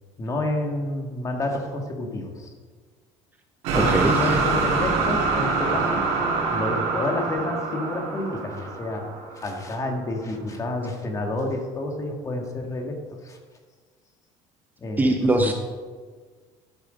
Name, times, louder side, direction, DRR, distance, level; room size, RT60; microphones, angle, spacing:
voice 1, 0.2-2.5 3.7-6.1 6.5-9.0 9.3-13.4 14.8-15.1, left 2 dB, 25° left, 2 dB, 2.0 m, -29 dB
sound 1, 3.6-9.7, right 4 dB, 75° right, 3.6 m, -25 dB
voice 2, 3.7-4.4 15.0-15.5, right 2 dB, 15° right, 4 dB, 0.9 m, -22 dB
12.5 x 8.1 x 5.2 m, 1.5 s
cardioid pair, 130°, 12 cm